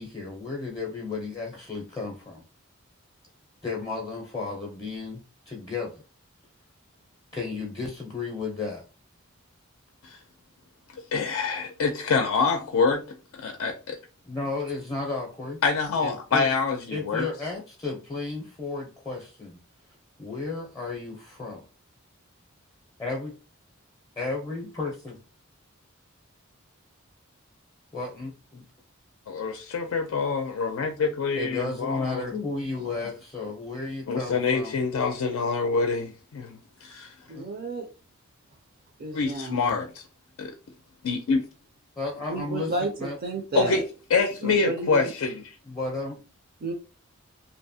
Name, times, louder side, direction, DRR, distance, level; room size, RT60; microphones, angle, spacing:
voice 1, 0.0-2.4 3.6-5.2 5.5-6.0 7.3-8.8 14.2-15.6 16.0-16.5 16.9-19.6 20.2-21.6 23.0-23.4 24.2-25.2 27.9-28.6 31.3-34.8 37.3-37.5 42.0-43.2 45.6-46.2, left 3 dB, 15° left, 0.5 m, -33 dB
voice 2, 11.1-13.0 13.4-14.0 15.6-17.3 29.3-32.2 34.1-37.1 39.1-40.0 40.4-40.5 41.0-41.4 43.5-43.8 44.1-45.4, left 4 dB, 80° left, 0.4 m, -26 dB
voice 3, 37.3-37.9 39.0-39.8 42.3-43.8 44.4-45.1 46.6-46.7, right 2 dB, 45° right, 0.4 m, -32 dB
2.7 x 2.0 x 2.6 m
head